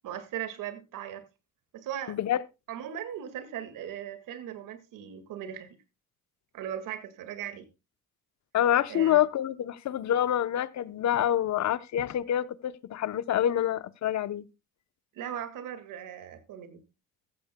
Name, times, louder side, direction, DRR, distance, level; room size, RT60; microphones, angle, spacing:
voice 1, 0.0-1.2 1.7-2.2 2.7-5.8 6.5-7.7 8.9-9.2 15.1-16.8, right 10 dB, 75° right, 1.9 m, -38 dB
voice 2, 2.1-2.4 8.5-14.4, left 11 dB, 60° left, 0.8 m, -27 dB
14.5 x 14.5 x 2.2 m
supercardioid pair, 65°, 32 cm